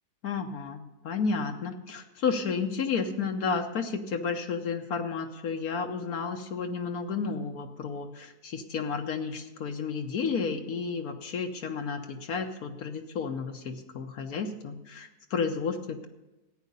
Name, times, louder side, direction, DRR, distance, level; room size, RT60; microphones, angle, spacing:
voice 1, 0.2-16.1, left 5 dB, 70° left, 5 dB, 1.3 m, -32 dB
14.0 x 9.4 x 5.4 m, 1.0 s
omnidirectional pair, 1.7 m